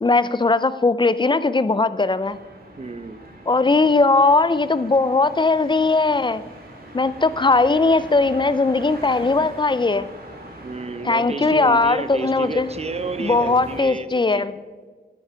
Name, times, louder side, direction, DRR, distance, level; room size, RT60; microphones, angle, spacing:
voice 1, 0.0-2.4 3.5-6.4 6.9-10.1 11.0-12.7 13.2-14.5, left 3 dB, 25° left, 15 dB, 0.4 m, -19 dB
sound 1, 2.2-13.8, right 1 dB, 55° right, 2.1 m, -41 dB
voice 2, 2.8-3.2 10.6-14.5, right 3 dB, 35° right, 12 dB, 0.7 m, -31 dB
10.0 x 9.1 x 4.9 m, 1.5 s
wide cardioid pair, 90°, 18 cm